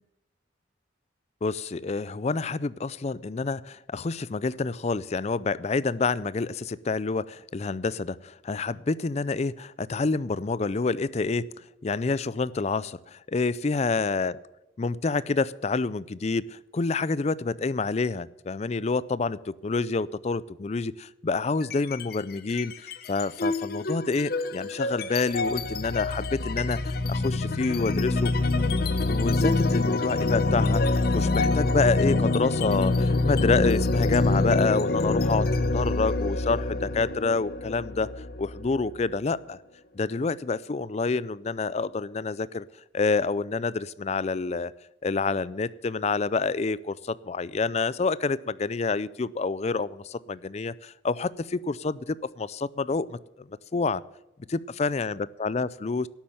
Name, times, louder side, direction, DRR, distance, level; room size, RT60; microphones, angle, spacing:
voice 1, 1.4-11.5 11.8-14.4 14.8-28.3 29.1-38.1 38.4-39.6 39.9-42.6 42.9-44.7 45.0-54.0 54.8-56.1, left 4 dB, 35° left, 20 dB, 0.4 m, -28 dB
sound 1, 21.6-22.1 22.5-39.1, left 2 dB, 55° left, 0.8 m, -26 dB
12.0 x 8.7 x 8.7 m, 0.94 s
head